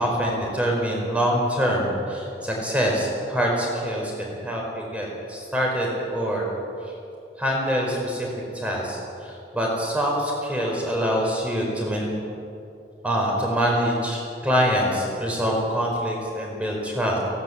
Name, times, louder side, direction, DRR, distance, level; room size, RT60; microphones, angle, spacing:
voice 1, 0.0-6.5 7.4-8.3 8.5-12.1 13.0-17.2, equal, 5° right, -2 dB, 4.8 m, -25 dB
18.0 x 17.0 x 8.5 m, 2.7 s
head